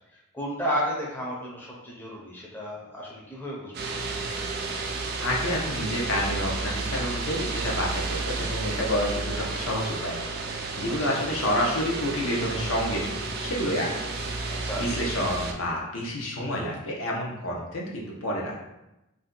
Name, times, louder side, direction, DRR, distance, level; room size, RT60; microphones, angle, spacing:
voice 1, 0.1-3.7 11.1-11.2 14.5-14.9, equal, 10° left, -4 dB, 0.5 m, -32 dB
sound 1, 3.7-15.5, right 3 dB, 50° right, 0.4 m, -32 dB
voice 2, 5.2-13.1 13.4-14.0 14.4-18.6, equal, 80° left, -2 dB, 0.7 m, -29 dB
2.6 x 2.1 x 3.6 m, 0.92 s
head